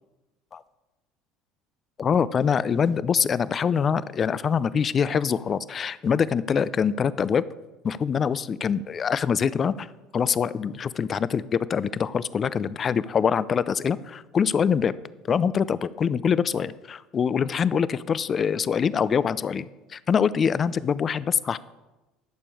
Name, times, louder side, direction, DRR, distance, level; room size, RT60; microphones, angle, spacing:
voice 1, 2.0-7.4 7.8-9.9 10.1-14.9 15.3-19.7 19.9-21.6, left 7 dB, 40° left, 17 dB, 0.5 m, -24 dB
12.0 x 6.9 x 4.9 m, 1.1 s
hypercardioid pair, 70°, 0 cm